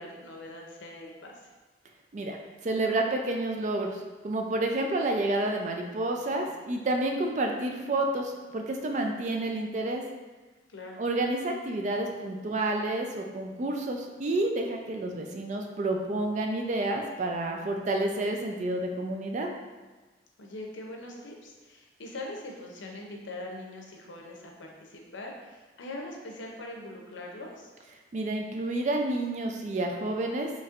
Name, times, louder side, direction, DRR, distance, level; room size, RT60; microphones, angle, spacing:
voice 1, 0.0-1.4 10.7-11.0 20.4-27.7, left 1 dB, 80° left, 0 dB, 0.6 m, -42 dB
voice 2, 2.6-4.0 4.2-10.0 11.0-19.5 28.1-30.5, right 2 dB, 40° right, 2 dB, 0.4 m, -29 dB
4.2 x 3.0 x 2.5 m, 1.3 s
head